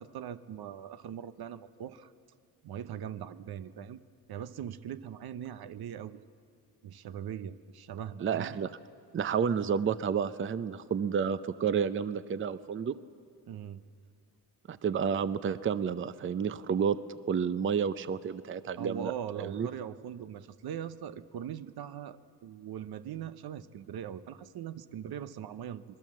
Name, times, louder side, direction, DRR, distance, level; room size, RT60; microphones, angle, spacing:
voice 1, 0.0-2.1 2.6-4.0 4.3-6.2 6.8-8.6 13.5-13.8 18.8-25.8, right 9 dB, 70° right, 13 dB, 0.9 m, -41 dB
voice 2, 8.2-8.7 9.1-13.0 14.7-17.0 17.3-19.7, right 7 dB, 30° right, 14 dB, 0.6 m, -30 dB
26.5 x 20.5 x 7.5 m, 2.4 s
cardioid pair, 120°, 39 cm